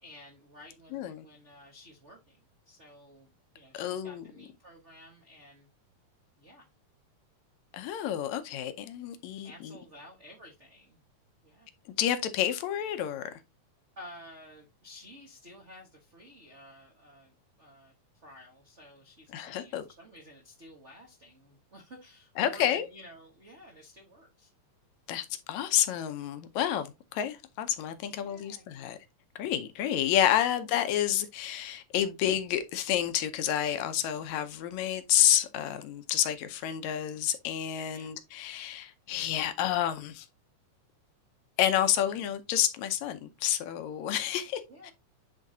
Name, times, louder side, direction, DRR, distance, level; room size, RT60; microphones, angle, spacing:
voice 1, 0.0-5.7 6.4-6.7 9.3-11.0 11.4-11.7 14.0-24.5 28.0-29.0 37.9-38.1 44.7-44.9, left 1 dB, 60° right, 0.7 m, -52 dB
voice 2, 0.9-1.3 3.7-4.2 7.7-9.8 12.0-13.4 19.3-19.8 22.4-22.9 25.1-29.0 29.4-40.3 41.6-44.9, left 11 dB, 70° left, 1.9 m, -29 dB
9.9 x 3.9 x 2.7 m
omnidirectional pair, 3.7 m